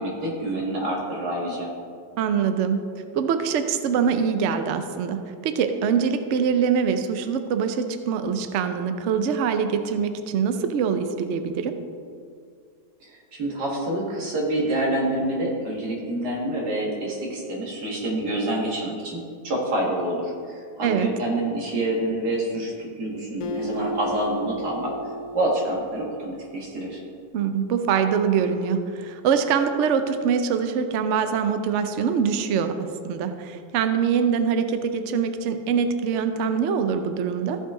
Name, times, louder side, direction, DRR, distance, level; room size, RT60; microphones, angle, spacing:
voice 1, 0.0-1.7 13.0-24.9 25.3-27.0, right 1 dB, 60° right, -3 dB, 2.3 m, -27 dB
voice 2, 2.2-2.8 3.1-11.8 20.8-21.1 27.3-32.7 33.0-37.6, right 6 dB, 85° right, 8 dB, 0.6 m, -24 dB
Acoustic guitar, 23.4-26.9, right 1 dB, 65° left, 0.9 m, -34 dB
14.5 x 5.4 x 3.7 m, 2.2 s
omnidirectional pair, 2.0 m